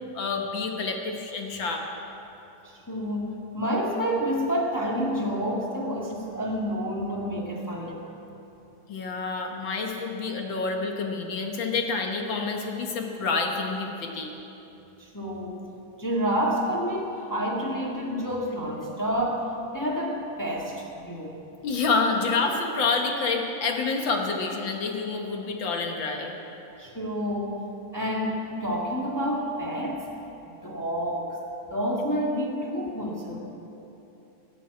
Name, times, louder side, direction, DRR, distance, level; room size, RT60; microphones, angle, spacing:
voice 1, 0.1-1.8 8.9-14.3 21.6-26.3, left 4 dB, 55° left, 2 dB, 1.4 m, -28 dB
voice 2, 2.6-8.1 15.0-15.7 16.0-21.4 26.8-27.6 27.9-30.1 30.6-31.4 31.7-33.4, equal, 15° left, -3 dB, 0.6 m, -29 dB
19.5 x 7.6 x 8.4 m, 3.0 s
omnidirectional pair, 3.6 m